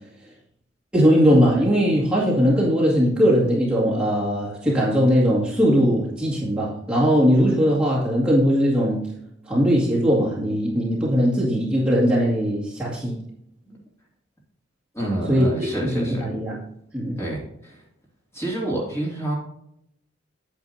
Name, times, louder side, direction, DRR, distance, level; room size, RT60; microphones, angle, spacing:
voice 1, 0.9-9.0 9.5-13.2 15.3-16.6 16.9-17.2, equal, 5° right, -7 dB, 2.2 m, -20 dB
voice 2, 14.9-16.3 17.2-17.4 18.3-19.4, right 1 dB, 15° left, -3 dB, 2.6 m, -27 dB
9.0 x 8.5 x 2.8 m, 0.75 s
head